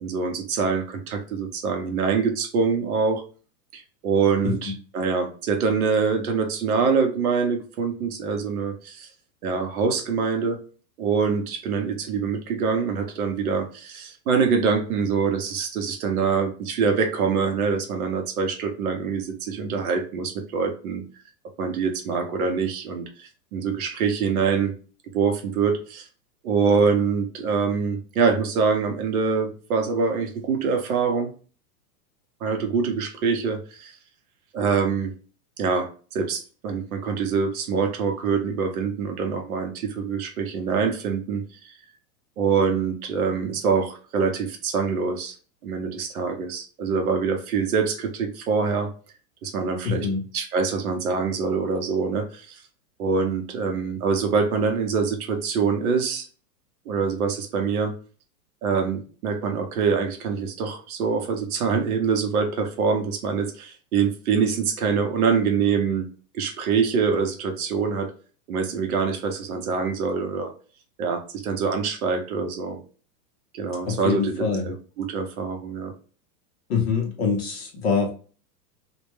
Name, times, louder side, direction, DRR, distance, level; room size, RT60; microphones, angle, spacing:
voice 1, 0.0-3.2 3.7-9.1 9.4-10.6 11.0-21.0 21.6-24.7 25.1-26.1 26.4-31.3 32.4-34.0 34.5-35.1 35.6-41.7 42.4-45.4 45.6-48.9 49.4-50.1 50.3-52.6 53.0-56.3 56.9-57.9 58.6-66.1 66.3-68.1 68.5-70.5 71.0-72.8 73.5-75.9, right 5 dB, 60° right, 5 dB, 0.7 m, -25 dB
voice 2, 4.4-4.7 49.8-50.2 73.8-74.7 76.7-78.1, left 5 dB, 40° left, 0 dB, 0.6 m, -25 dB
2.2 x 2.1 x 2.9 m, 0.39 s
supercardioid pair, 170°, 49 cm